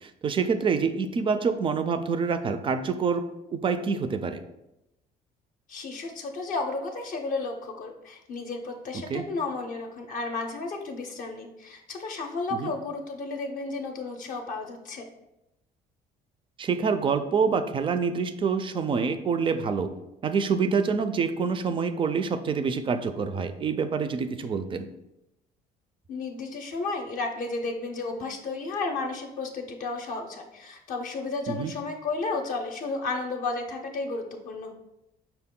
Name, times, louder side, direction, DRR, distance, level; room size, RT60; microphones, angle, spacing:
voice 1, 0.0-3.2 3.5-4.4 8.9-9.2 12.6-12.7 16.6-19.9 20.2-24.9 31.5-31.7, right 5 dB, 30° right, 10 dB, 0.3 m, -26 dB
voice 2, 5.7-15.0 26.1-34.7, left 3 dB, 50° left, 2 dB, 0.5 m, -33 dB
5.6 x 2.1 x 3.7 m, 0.90 s
cardioid pair, 110°, 17 cm